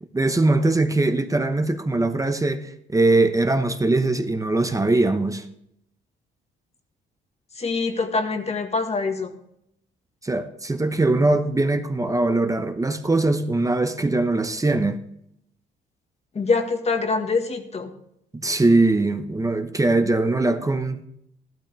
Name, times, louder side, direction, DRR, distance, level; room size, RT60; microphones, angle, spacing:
voice 1, 0.1-5.5 10.2-15.0 18.3-21.0, right 2 dB, 15° right, 8 dB, 0.9 m, -21 dB
voice 2, 7.6-9.3 16.3-17.9, left 4 dB, 35° left, 6 dB, 1.7 m, -24 dB
13.0 x 12.0 x 3.4 m, 0.76 s
cardioid pair, 90°, 20 cm